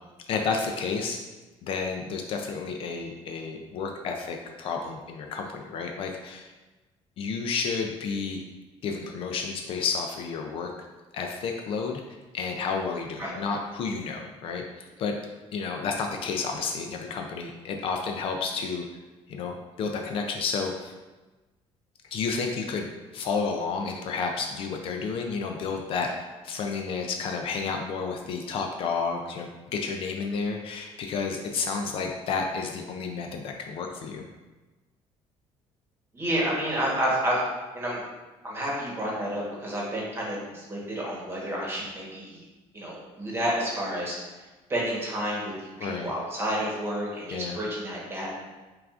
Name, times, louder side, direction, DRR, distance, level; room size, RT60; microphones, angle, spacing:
voice 1, 0.3-1.2 1.6-6.5 7.2-8.4 8.8-10.7 11.1-12.0 12.3-15.2 15.5-18.9 19.3-20.9 22.1-22.9 23.1-34.2 45.8-46.1 47.3-47.6, left 5 dB, 55° left, 3 dB, 0.4 m, -31 dB
voice 2, 36.1-37.4 37.7-38.0 38.4-40.4 40.7-42.4 42.7-44.2 44.7-48.3, right 1 dB, 20° right, -4 dB, 1.1 m, -30 dB
5.7 x 2.4 x 2.4 m, 1.2 s
cardioid pair, 135°, 11 cm